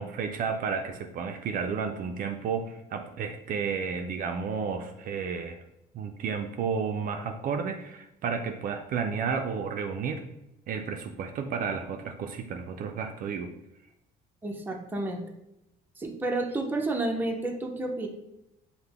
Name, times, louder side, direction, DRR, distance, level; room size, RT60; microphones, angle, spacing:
voice 1, 0.0-5.6 5.9-10.2 10.7-13.5, right 6 dB, 55° right, 5 dB, 0.4 m, -32 dB
voice 2, 14.4-15.2 16.0-18.1, right 2 dB, 10° right, 1 dB, 0.6 m, -30 dB
5.5 x 2.1 x 3.4 m, 0.86 s
cardioid pair, 110°, 17 cm